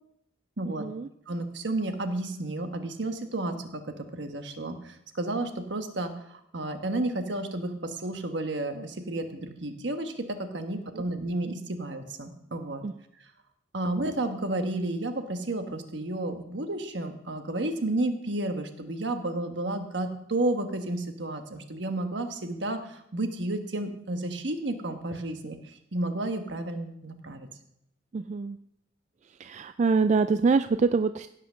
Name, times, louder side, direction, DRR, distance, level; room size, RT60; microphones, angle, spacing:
voice 1, 0.7-1.1 10.9-11.0 12.8-12.9 28.1-28.6 29.4-31.3, right 4 dB, 40° right, 11 dB, 0.3 m, -25 dB
voice 2, 1.3-12.8 13.7-27.5, right 2 dB, 70° right, 6 dB, 1.3 m, -32 dB
16.0 x 5.8 x 6.3 m, 0.77 s
head